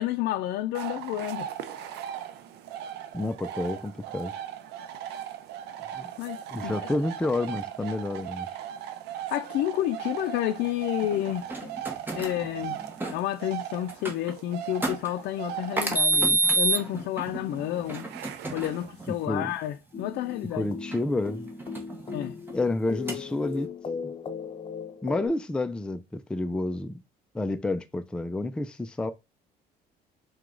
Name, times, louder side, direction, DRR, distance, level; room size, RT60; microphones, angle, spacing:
voice 1, 0.0-1.5 6.2-6.9 9.3-11.7 12.1-12.8 13.1-18.1 18.5-20.7 22.1-22.3, left 13 dB, 80° left, 0.4 m, -30 dB
sound 1, 0.7-19.2, right 10 dB, 80° right, 0.5 m, -39 dB
voice 2, 3.1-4.3 5.9-6.1 6.5-8.5 19.1-19.5 20.5-21.5 22.5-23.7 24.0-24.1 25.0-27.0 27.3-29.1, left 2 dB, 5° left, 0.4 m, -29 dB
sound 2, 11.0-13.2 13.9-14.3 14.8-15.1 15.8-19.1 20.9-22.6 23.1-23.7, right 3 dB, 10° right, 1.0 m, -28 dB
sound 3, 19.9-25.3, left 6 dB, 30° left, 0.7 m, -38 dB
4.7 x 2.3 x 3.7 m
cardioid pair, 110°, 17 cm